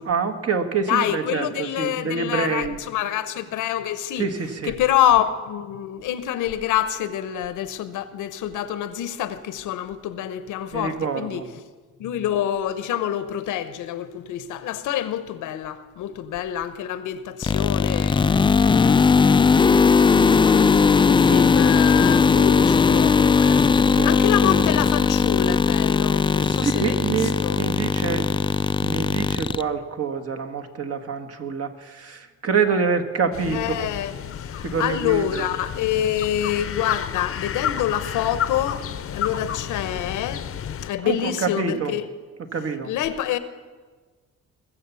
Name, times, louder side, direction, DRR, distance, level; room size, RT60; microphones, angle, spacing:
voice 1, 0.0-2.8 4.2-4.7 10.7-11.5 21.2-21.4 23.9-24.1 26.4-28.3 28.8-33.9 34.6-35.4 41.0-41.9 42.5-42.9, right 5 dB, 55° right, 1.5 m, -26 dB
voice 2, 0.9-4.3 4.6-11.4 12.0-18.3 19.6-23.7 24.0-27.6 33.5-34.1 34.4-40.5 40.8-42.1 42.8-43.4, left 11 dB, 85° left, 0.9 m, -26 dB
sound 1, 17.4-29.6, left 5 dB, 15° left, 0.3 m, -18 dB
sound 2, 33.3-40.9, left 9 dB, 50° left, 0.7 m, -31 dB
21.0 x 7.2 x 6.9 m
cardioid pair, 90°, 30 cm